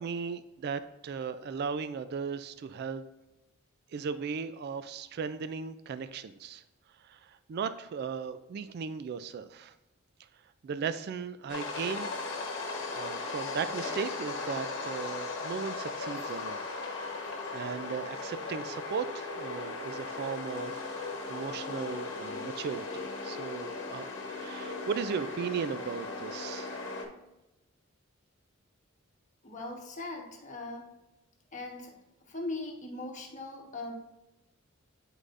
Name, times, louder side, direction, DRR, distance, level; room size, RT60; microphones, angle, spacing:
voice 1, 0.0-3.0 3.9-6.6 7.0-9.7 10.6-12.2 12.9-16.7 17.5-26.8, right 6 dB, 50° right, 12 dB, 0.3 m, -37 dB
sound 1, 11.5-27.0, left 3 dB, 60° left, 1.1 m, -37 dB
voice 2, 29.4-30.9 31.5-31.9 32.2-33.9, left 2 dB, 35° left, 0 dB, 1.2 m, -40 dB
8.6 x 4.8 x 2.5 m, 0.98 s
head